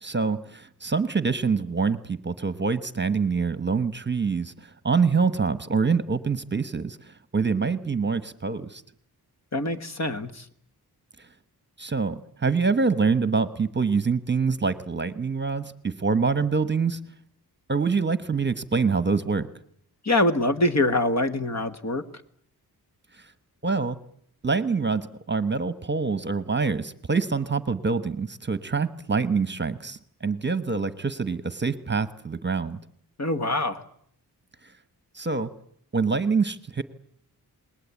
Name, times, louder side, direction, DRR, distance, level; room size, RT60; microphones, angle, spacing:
voice 1, 0.0-8.8 11.8-17.0 17.7-19.5 23.2-23.3 23.6-24.0 24.4-32.8 35.1-35.5 35.9-36.8, right 5 dB, 30° right, 12 dB, 1.1 m, -25 dB
voice 2, 9.5-10.4 20.0-22.0 33.2-33.8, left 2 dB, 45° left, 9 dB, 1.6 m, -24 dB
28.0 x 20.5 x 8.4 m, 0.65 s
wide cardioid pair, 120°, 39 cm